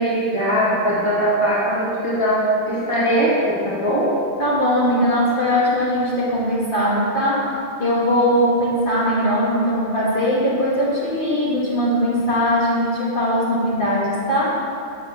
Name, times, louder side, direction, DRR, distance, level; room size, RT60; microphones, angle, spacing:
voice 1, 0.0-4.1, right 1 dB, 25° left, -8 dB, 2.0 m, -20 dB
voice 2, 4.4-7.5 7.8-14.6, equal, 50° left, -8 dB, 2.5 m, -20 dB
7.3 x 6.6 x 7.0 m, 2.5 s
omnidirectional pair, 1.1 m